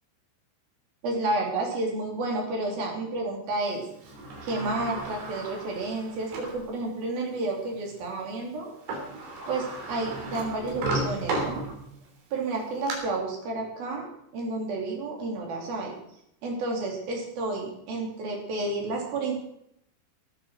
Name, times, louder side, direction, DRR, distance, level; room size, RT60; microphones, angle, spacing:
voice 1, 1.0-3.8 4.4-8.7 9.5-11.6 12.3-14.1 14.3-15.9 16.4-19.3, right 2 dB, 50° right, 0 dB, 4.7 m, -31 dB
Sliding door, 4.0-6.6 7.2-7.3 8.6-8.7 8.9-12.1 12.5-12.9, right 2 dB, 85° right, 5.9 m, -34 dB
17.0 x 9.7 x 6.4 m, 0.74 s
omnidirectional pair, 5.6 m